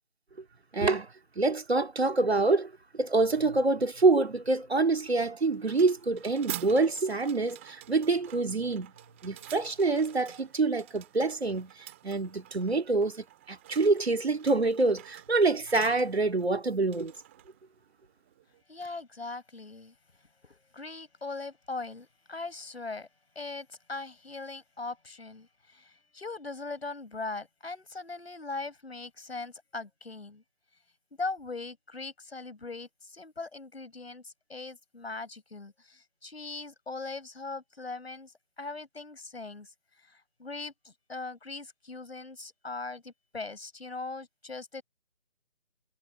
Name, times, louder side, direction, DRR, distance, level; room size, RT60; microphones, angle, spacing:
voice 1, 0.7-1.1 1.4-8.9 9.2-17.1, right 3 dB, 60° right, 2.8 m, -26 dB
sound 1, 5.5-18.6, right 15 dB, 10° right, 3.1 m, -48 dB
voice 2, 18.7-19.9 20.4-23.1 23.4-30.4 31.2-39.7 40.1-44.8, left 3 dB, 60° left, 7.2 m, -40 dB
figure-of-eight pair, 170°, 35 cm